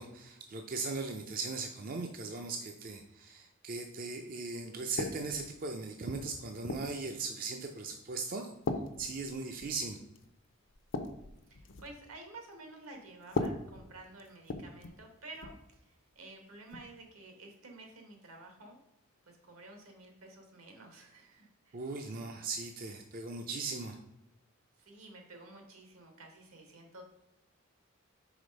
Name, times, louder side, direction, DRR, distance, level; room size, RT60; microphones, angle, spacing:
voice 1, 0.0-8.5 9.0-10.0 21.7-24.0, right 3 dB, 40° right, 4 dB, 0.4 m, -38 dB
sound 1, 5.0-5.5 6.1-7.0 7.7-7.9 8.6-9.8 10.2-10.3 10.7-12.0 13.2-15.0 15.3-15.6 16.7-16.9, left 3 dB, 60° left, 0.6 m, -38 dB
voice 2, 11.5-18.8 19.3-21.8 24.8-27.0, right 2 dB, 80° right, 3 dB, 1.5 m, -51 dB
5.0 x 4.0 x 5.2 m, 0.89 s
head